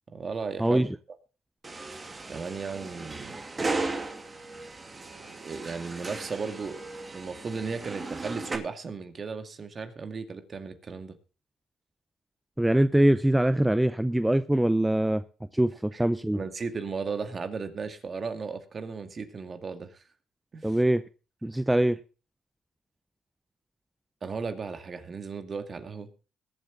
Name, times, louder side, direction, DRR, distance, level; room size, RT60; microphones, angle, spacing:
voice 1, 0.1-0.8 2.3-3.4 5.3-11.2 15.9-16.0 16.3-20.0 20.5-20.8 24.2-26.1, right 5 dB, 40° right, 8 dB, 2.2 m, -35 dB
sound 1, 1.6-8.6, right 3 dB, 25° right, 2.5 m, -36 dB
voice 2, 12.6-15.2 15.5-16.4 20.6-21.0 21.4-22.0, right 1 dB, 5° right, 12 dB, 0.6 m, -23 dB
21.0 x 8.0 x 3.9 m, 0.34 s
cardioid pair, 90°, 0 cm